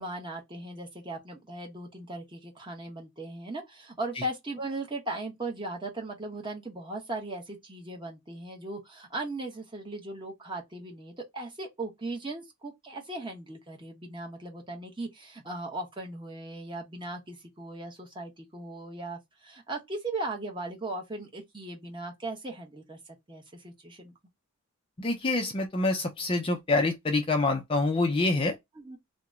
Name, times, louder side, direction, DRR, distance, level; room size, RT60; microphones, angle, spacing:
voice 1, 0.0-24.1 28.8-29.0, right 2 dB, 20° right, 0.9 m, -38 dB
voice 2, 25.0-28.6, left 2 dB, 25° left, 0.4 m, -26 dB
2.8 x 2.1 x 3.5 m
head